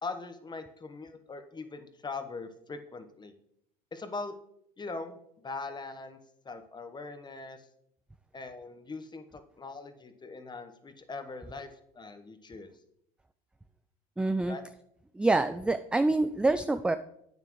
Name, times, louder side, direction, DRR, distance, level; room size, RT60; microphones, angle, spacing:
voice 1, 0.0-3.3 3.9-4.3 4.8-5.2 5.4-6.2 6.4-7.7 8.3-12.7 14.5-14.6, left 3 dB, 20° left, 9 dB, 1.1 m, -41 dB
voice 2, 14.2-14.6 15.1-17.0, right 2 dB, 5° right, 10 dB, 0.3 m, -26 dB
9.2 x 8.9 x 3.1 m, 0.75 s
hypercardioid pair, 75°, 20 cm